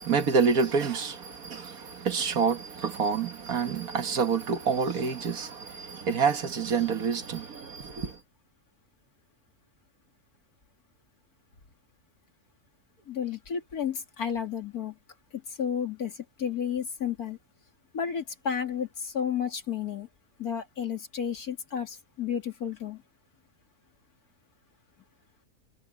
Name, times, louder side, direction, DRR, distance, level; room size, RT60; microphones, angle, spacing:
voice 1, 0.0-8.2, right 5 dB, 75° right, 1.9 m, -28 dB
voice 2, 13.1-15.0 15.3-17.4 17.9-20.1 20.4-23.0, left 8 dB, 85° left, 2.9 m, -32 dB
omnidirectional pair, 1.6 m